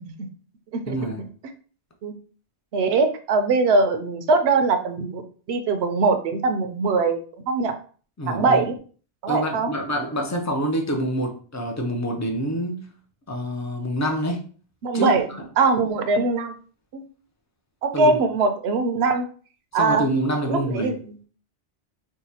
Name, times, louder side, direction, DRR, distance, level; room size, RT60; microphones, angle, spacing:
voice 1, 0.9-1.2 8.2-8.6 9.3-12.8 13.3-14.5 14.9-15.1 17.9-18.2 19.7-20.9, equal, 25° left, 0.3 m, -26 dB
voice 2, 2.7-5.2 5.5-7.7 8.3-8.7 9.2-9.7 14.8-15.3 15.6-16.5 16.9-17.1 17.8-19.2 19.7-20.0 20.5-21.0, right 3 dB, 70° right, 0.8 m, -21 dB
4.7 x 2.1 x 2.8 m
omnidirectional pair, 1.2 m